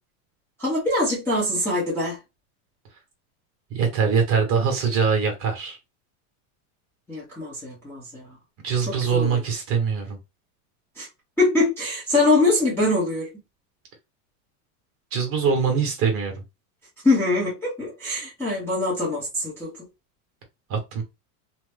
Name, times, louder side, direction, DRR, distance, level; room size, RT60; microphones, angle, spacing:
voice 1, 0.6-2.2 7.1-8.4 8.8-9.4 11.0-11.1 11.4-13.3 17.0-19.8, left 2 dB, 5° left, 0.7 m, -23 dB
voice 2, 3.7-5.8 8.6-10.2 15.1-16.4 20.7-21.0, right 6 dB, 30° right, 1.0 m, -23 dB
2.8 x 2.1 x 3.4 m
supercardioid pair, 155°, 46 cm